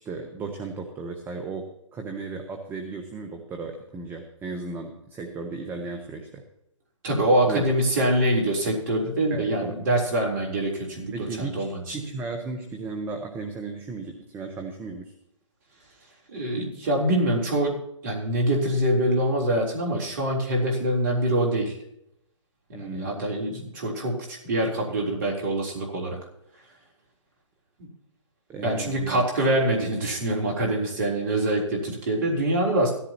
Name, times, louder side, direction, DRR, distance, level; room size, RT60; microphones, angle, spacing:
voice 1, 0.0-6.4 7.5-7.7 9.3-9.8 11.1-15.1 22.7-23.2 28.5-29.2, right 4 dB, 15° right, 4 dB, 1.0 m, -35 dB
voice 2, 7.0-12.0 16.3-21.8 22.8-26.2 27.8-27.9 28.6-32.9, right 1 dB, 40° right, -2 dB, 3.7 m, -25 dB
16.5 x 13.5 x 3.0 m, 0.79 s
figure-of-eight pair, 135°, 16 cm